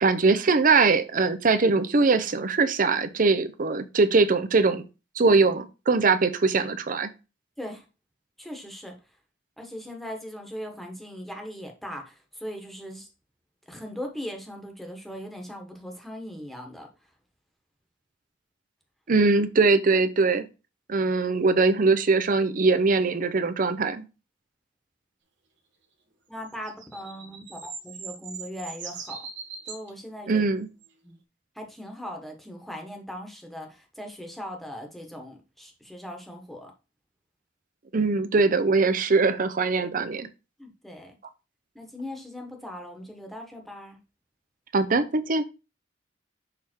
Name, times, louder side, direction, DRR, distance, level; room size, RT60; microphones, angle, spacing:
voice 1, 0.0-4.8 5.2-7.1 19.1-20.5 20.9-24.0 30.3-30.7 37.9-40.3 44.7-45.5, right 4 dB, 45° right, 12 dB, 0.6 m, -22 dB
voice 2, 8.4-8.9 9.6-13.1 13.7-16.9 26.3-29.3 29.7-30.4 31.0-31.2 31.5-36.7 40.6-41.2 41.7-44.0, equal, ahead, 3 dB, 1.2 m, -39 dB
sound 1, 26.5-29.9 30.8-30.9, right 6 dB, 75° right, 1.3 m, -40 dB
6.6 x 3.6 x 4.4 m, 0.30 s
head